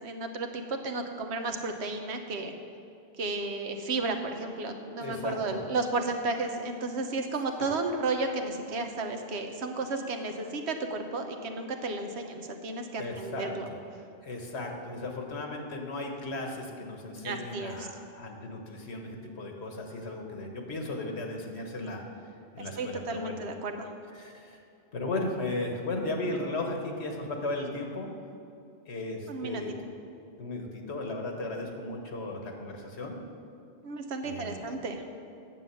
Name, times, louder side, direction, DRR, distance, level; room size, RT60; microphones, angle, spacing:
voice 1, 0.0-2.5 3.2-13.6 17.2-17.9 22.6-23.9 29.3-29.6 33.8-35.0, right 3 dB, 85° right, 5 dB, 1.2 m, -33 dB
voice 2, 5.0-5.6 7.6-7.7 13.0-13.8 14.2-22.0 22.5-23.4 24.1-24.6 24.9-28.2 28.9-29.7 30.4-33.2 34.2-34.7, left 2 dB, 90° left, 2 dB, 1.6 m, -36 dB
9.2 x 7.5 x 6.9 m, 2.6 s
omnidirectional pair, 1.1 m